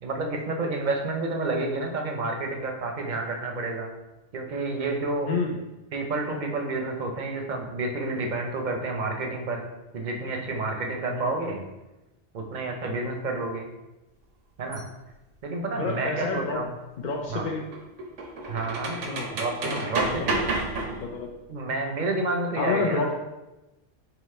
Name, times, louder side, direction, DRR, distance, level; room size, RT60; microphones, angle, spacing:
voice 1, 0.0-3.9 4.3-5.3 5.9-9.6 9.9-11.7 12.3-13.7 14.6-14.8 15.4-16.7 17.3-17.5 18.5-19.0 19.3-20.4 21.5-23.1, right 2 dB, 50° right, 2 dB, 0.7 m, -29 dB
sound 1, 14.7-14.8 17.2-21.3, right 2 dB, 85° right, 1.1 m, -31 dB
voice 2, 15.7-16.7 17.0-17.7 19.1-19.3 19.7-20.5 21.0-21.3 22.6-23.1, left 4 dB, 60° left, -1 dB, 0.5 m, -29 dB
3.9 x 2.8 x 4.2 m, 1.0 s
omnidirectional pair, 1.2 m